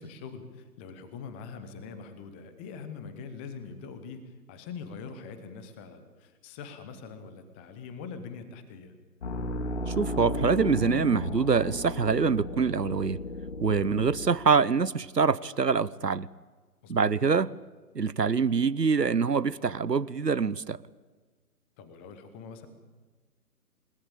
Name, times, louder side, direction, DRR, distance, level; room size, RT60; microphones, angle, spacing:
voice 1, 0.0-8.9 16.8-17.1 21.8-22.7, left 5 dB, 5° left, 0.8 m, -43 dB
sound 1, 9.2-14.3, left 2 dB, 40° left, 3.5 m, -34 dB
voice 2, 9.9-13.2 13.6-16.3 16.9-17.5 17.9-20.8, right 5 dB, 80° right, 1.0 m, -25 dB
28.5 x 18.0 x 8.8 m
figure-of-eight pair, 135°, 48 cm